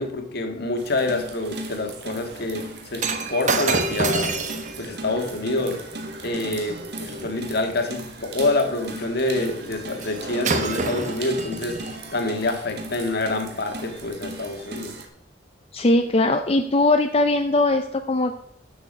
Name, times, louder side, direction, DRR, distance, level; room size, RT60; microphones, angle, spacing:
voice 1, 0.0-4.3 4.8-5.8 6.2-11.8 12.1-15.0, left 2 dB, 55° left, 5 dB, 1.7 m, -27 dB
sound 1, 0.8-15.1, right 2 dB, 60° right, 1.7 m, -37 dB
Shatter, 3.0-7.4 10.0-10.2 10.4-12.0 12.7-12.8, right 3 dB, 40° right, 1.1 m, -28 dB
voice 2, 15.7-18.3, left 2 dB, 30° left, 6 dB, 0.6 m, -20 dB
12.5 x 7.0 x 5.3 m, 0.72 s
head